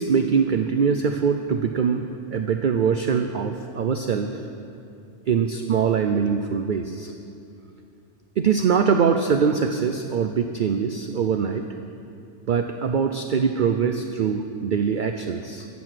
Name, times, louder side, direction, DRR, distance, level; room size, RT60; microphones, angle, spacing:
voice 1, 0.0-2.1 2.3-4.3 5.3-7.1 8.4-11.6 12.5-15.7, right 6 dB, 55° right, 6 dB, 0.6 m, -23 dB
13.5 x 8.3 x 7.6 m, 2.6 s
omnidirectional pair, 1.3 m